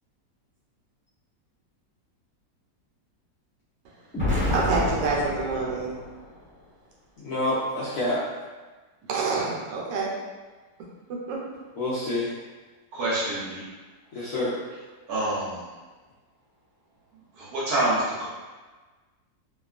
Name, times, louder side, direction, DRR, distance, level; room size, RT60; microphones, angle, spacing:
Explosion, 4.1-6.3, left 1 dB, 10° left, 0.9 m, -28 dB
voice 1, 4.5-6.0 9.1-10.1 11.1-11.4, right 4 dB, 85° right, -3 dB, 1.3 m, -27 dB
voice 2, 7.2-8.2 11.8-12.3 14.1-14.5, left 1 dB, 75° left, -9 dB, 0.8 m, -27 dB
voice 3, 12.9-13.6 14.2-14.3 15.1-15.6 17.4-18.3, right 1 dB, 65° right, -7 dB, 1.1 m, -27 dB
2.9 x 2.3 x 2.3 m, 1.3 s
omnidirectional pair, 1.9 m